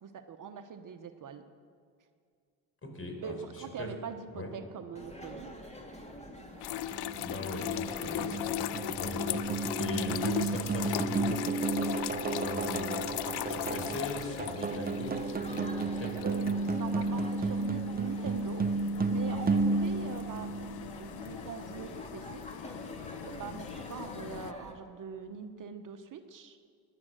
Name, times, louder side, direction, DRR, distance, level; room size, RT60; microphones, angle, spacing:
voice 1, 0.0-1.4 3.2-5.5 9.6-9.8 16.1-18.6 19.0-22.4 23.2-26.6, right 7 dB, 45° right, 7 dB, 1.0 m, -43 dB
voice 2, 2.8-3.3 3.8-3.9 4.3-4.5 7.1-16.3 19.5-19.7, left 2 dB, 30° left, 3 dB, 4.7 m, -41 dB
sound 1, 4.9-24.7, equal, 15° left, 2.8 m, -46 dB
sound 2, 6.6-24.5, left 14 dB, 60° left, 0.6 m, -39 dB
sound 3, 6.9-21.1, right 3 dB, 20° right, 0.7 m, -33 dB
17.0 x 11.0 x 7.7 m, 2.2 s
supercardioid pair, 70°, 43 cm